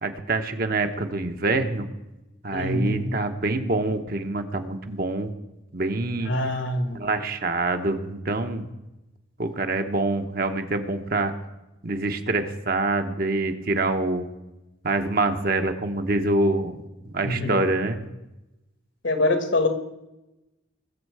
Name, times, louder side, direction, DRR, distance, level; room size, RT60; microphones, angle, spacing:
voice 1, 0.0-1.9 2.4-5.3 5.7-6.3 6.9-8.7 9.4-11.3 11.8-14.3 14.8-16.8 17.0-18.0, right 2 dB, 45° right, 6 dB, 1.0 m, -25 dB
voice 2, 2.5-3.1 6.2-7.0 17.2-17.5 19.0-19.7, left 2 dB, 65° left, 8 dB, 1.6 m, -24 dB
20.5 x 7.4 x 4.8 m, 0.98 s
head